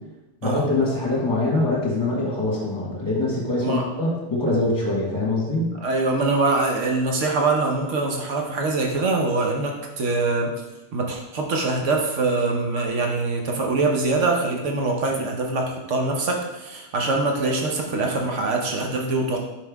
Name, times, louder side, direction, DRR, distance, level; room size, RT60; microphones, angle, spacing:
voice 1, 0.4-5.7, left 2 dB, 20° left, -4 dB, 1.4 m, -23 dB
voice 2, 5.8-10.5 10.9-19.4, right 3 dB, 85° right, 1 dB, 1.2 m, -23 dB
5.5 x 4.9 x 3.5 m, 1.0 s
omnidirectional pair, 1.2 m